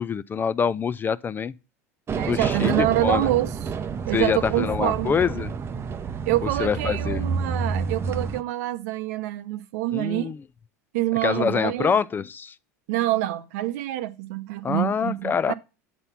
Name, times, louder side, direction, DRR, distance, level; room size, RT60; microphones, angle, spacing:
voice 1, 0.0-1.5 2.2-3.3 4.1-5.5 6.6-7.2 9.9-10.4 11.2-12.5 14.6-15.5, left 6 dB, 20° left, 0.3 m, -25 dB
sound 1, 2.1-8.4, right 5 dB, 30° right, 0.6 m, -29 dB
voice 2, 2.2-3.7 4.1-5.1 6.2-10.3 10.9-12.0 12.9-15.5, right 15 dB, 65° right, 0.7 m, -26 dB
7.8 x 4.2 x 5.6 m
hypercardioid pair, 90°, 9 cm